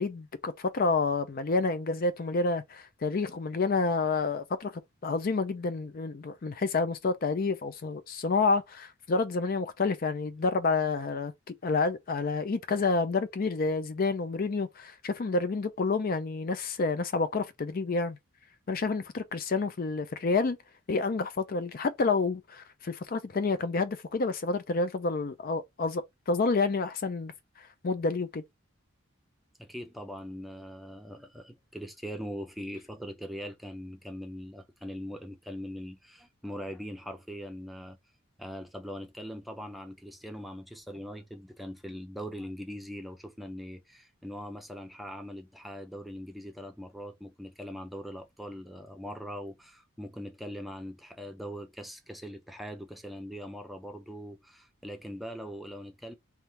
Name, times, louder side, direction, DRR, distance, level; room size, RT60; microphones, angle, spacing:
voice 1, 0.0-18.2 18.7-20.6 20.9-27.3 27.6-28.4, left 3 dB, 45° left, 0.4 m, -29 dB
voice 2, 29.6-38.0 38.4-56.1, equal, ahead, 0.6 m, -41 dB
3.6 x 2.6 x 4.3 m
head